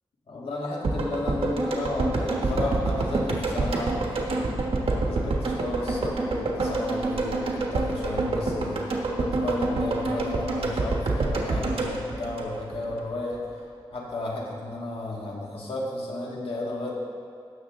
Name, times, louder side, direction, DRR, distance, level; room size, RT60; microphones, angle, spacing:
voice 1, 0.3-4.5 4.8-8.9 9.2-13.4 13.9-16.9, left 2 dB, 85° left, -4 dB, 2.0 m, -33 dB
sound 1, 0.8-13.0 13.3-13.4, right 2 dB, 80° right, 1.3 m, -27 dB
16.5 x 6.8 x 3.7 m, 2.2 s
wide cardioid pair, 110°, 10 cm